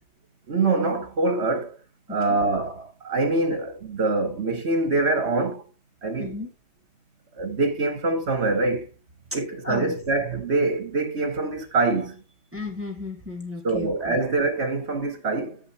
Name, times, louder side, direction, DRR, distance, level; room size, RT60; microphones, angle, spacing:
voice 1, 0.5-1.8 2.1-5.7 6.0-6.3 7.3-8.9 9.3-12.2 13.6-15.6, right 3 dB, 65° right, 1.7 m, -24 dB
voice 2, 6.2-6.5 9.6-9.9 12.5-14.2, left 2 dB, 10° right, 1.9 m, -34 dB
9.1 x 5.7 x 4.1 m
omnidirectional pair, 1.2 m